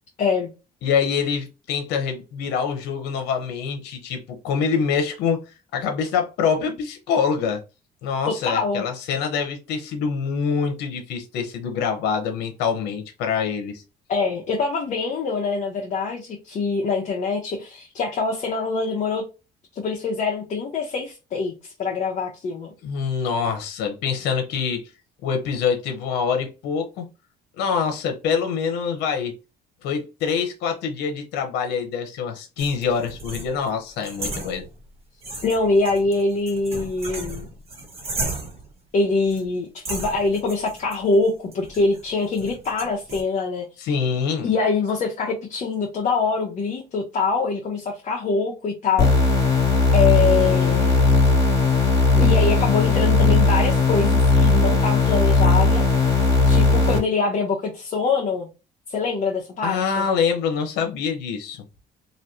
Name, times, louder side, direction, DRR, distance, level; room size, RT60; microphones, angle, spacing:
voice 1, 0.2-0.5 8.3-8.9 14.1-19.2 19.7-22.7 35.4-37.5 38.9-43.6 44.4-49.1 49.9-51.2 52.1-55.8 56.5-58.5 58.9-60.1, left 4 dB, 45° left, 0.9 m, -24 dB
voice 2, 0.8-5.5 5.7-7.6 8.0-13.8 22.8-24.8 25.2-27.1 27.6-29.3 29.8-34.6 43.8-44.5 59.6-61.6, left 6 dB, 85° left, 0.9 m, -25 dB
sound 1, 32.6-34.9 35.2-38.7 39.3-39.5 39.8-43.2, right 2 dB, 35° right, 1.5 m, -35 dB
sound 2, 49.0-57.0, left 3 dB, 20° left, 1.7 m, -17 dB
3.1 x 2.6 x 2.7 m
cardioid pair, 110°, 17 cm